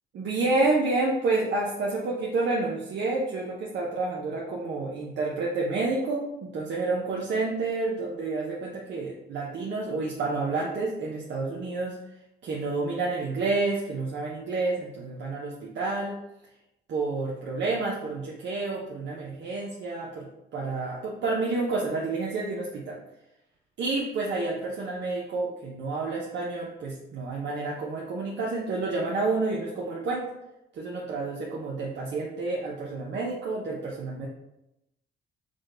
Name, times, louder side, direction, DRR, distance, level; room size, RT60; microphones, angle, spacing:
voice 1, 0.1-12.0 12.4-16.2 16.9-20.3 20.5-23.0 23.8-30.2 30.7-34.3, right 3 dB, 65° right, -3 dB, 0.7 m, -29 dB
5.0 x 2.2 x 3.7 m, 0.89 s
cardioid pair, 90°, 20 cm